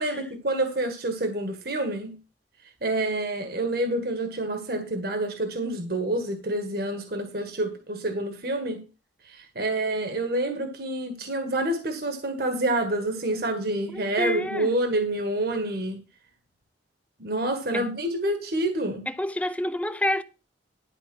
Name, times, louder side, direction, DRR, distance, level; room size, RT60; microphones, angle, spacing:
voice 1, 0.0-2.2 2.8-8.8 9.2-16.0 17.2-19.0, right 1 dB, 60° right, 1.7 m, -28 dB
voice 2, 13.9-14.7 17.7-17.9 19.1-20.2, left 1 dB, 10° left, 0.7 m, -28 dB
12.0 x 5.0 x 6.3 m
head